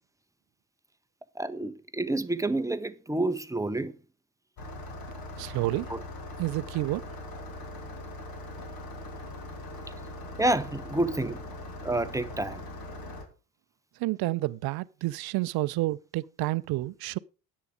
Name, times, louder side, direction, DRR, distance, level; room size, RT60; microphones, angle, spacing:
voice 1, 1.3-3.9 5.9-6.0 10.4-11.4 11.8-12.6, right 2 dB, 5° right, 0.9 m, -29 dB
Engine starting, 4.6-13.2, left 1 dB, 45° left, 3.1 m, -41 dB
voice 2, 5.4-5.9 6.4-7.0 14.0-17.2, right 18 dB, 50° right, 0.7 m, -29 dB
10.5 x 8.5 x 5.0 m
hypercardioid pair, 65°, 48 cm